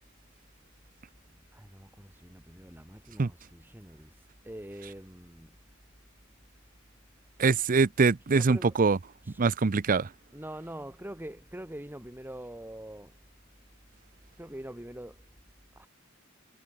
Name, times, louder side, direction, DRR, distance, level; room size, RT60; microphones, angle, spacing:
voice 1, 1.5-4.1 4.4-5.6 8.3-8.8 9.2-9.4 10.3-13.1 14.4-15.2 15.8-15.9, right 1 dB, 10° right, 2.2 m, -44 dB
voice 2, 7.4-9.0 9.4-10.1, right 4 dB, 40° right, 0.6 m, -23 dB
head